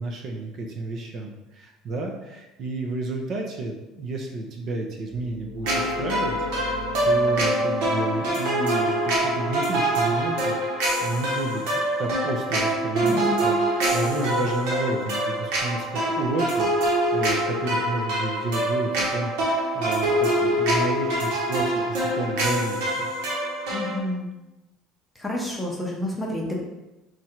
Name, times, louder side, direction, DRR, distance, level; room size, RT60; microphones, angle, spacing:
voice 1, 0.0-23.1, right 2 dB, 40° right, 1 dB, 0.5 m, -31 dB
sound 1, 5.1-10.6, equal, 15° right, 1.3 m, -41 dB
sound 2, 5.6-24.0, right 1 dB, 85° right, 1.2 m, -25 dB
voice 2, 13.0-13.5 23.7-24.3 25.2-26.6, left 1 dB, 5° left, -2 dB, 0.7 m, -29 dB
4.3 x 2.5 x 4.3 m, 1.0 s
cardioid pair, 165°, 0 cm